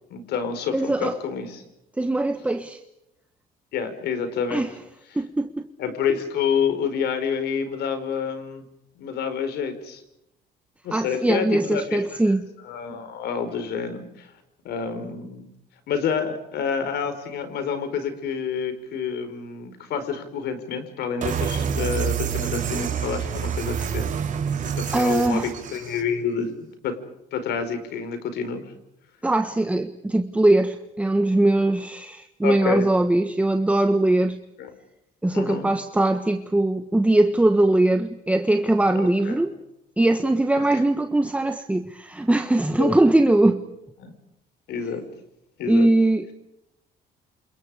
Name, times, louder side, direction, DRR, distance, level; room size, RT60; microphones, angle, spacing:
voice 1, 0.1-1.6 3.7-4.6 5.8-8.6 8.9-10.0 10.8-12.1 12.6-14.3 14.6-15.5 15.9-24.1 24.8-27.0 27.3-28.6 32.4-32.9 34.6-34.7 35.3-35.7 38.9-39.5 40.6-40.8 42.8-43.0 44.0-44.1 44.7-45.0 45.6-45.9, left 6 dB, 75° left, 5.0 m, -28 dB
voice 2, 0.7-1.1 2.0-2.8 4.5-4.7 5.1-5.7 10.9-12.5 24.9-25.5 29.2-34.4 35.2-39.5 40.0-43.6 45.7-46.3, right 2 dB, 10° right, 1.4 m, -21 dB
sound 1, 21.2-26.0, right 8 dB, 50° right, 5.3 m, -27 dB
29.0 x 28.5 x 5.1 m
cardioid pair, 110°, 17 cm